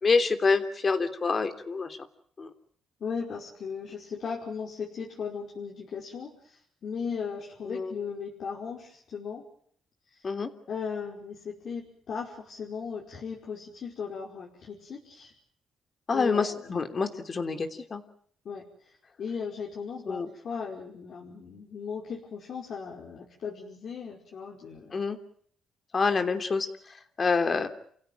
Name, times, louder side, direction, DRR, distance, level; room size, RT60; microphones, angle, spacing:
voice 1, 0.0-2.0 2.4-2.5 7.6-7.9 10.2-10.5 16.1-18.0 20.1-20.3 24.9-25.2 25.9-27.7, left 4 dB, 40° left, 9 dB, 3.3 m, -27 dB
voice 2, 3.0-9.4 10.1-10.3 10.7-15.3 16.1-16.8 18.5-25.0, left 6 dB, 60° left, -1 dB, 5.3 m, -37 dB
29.5 x 16.0 x 9.3 m, 0.63 s
cardioid pair, 90°, 0 cm